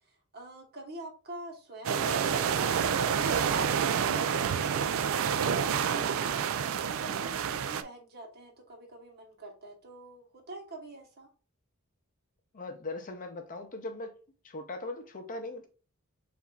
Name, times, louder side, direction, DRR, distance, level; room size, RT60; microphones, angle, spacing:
voice 1, 0.3-6.1 6.8-11.3, right 1 dB, 50° right, 1.1 m, -45 dB
sound 1, 1.8-7.8, right 7 dB, 65° right, 0.4 m, -28 dB
voice 2, 12.5-14.1 14.4-15.7, left 2 dB, 40° left, 0.6 m, -39 dB
7.0 x 2.5 x 2.3 m
head